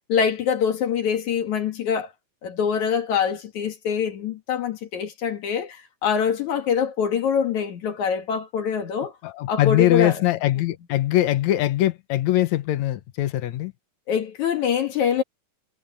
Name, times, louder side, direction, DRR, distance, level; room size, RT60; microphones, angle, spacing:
voice 1, 0.1-2.1 2.4-9.1 9.5-10.2 14.1-15.2, left 7 dB, 55° left, 2.7 m, -24 dB
voice 2, 9.2-13.7, left 14 dB, 70° left, 1.7 m, -22 dB
omnidirectional pair, 4.4 m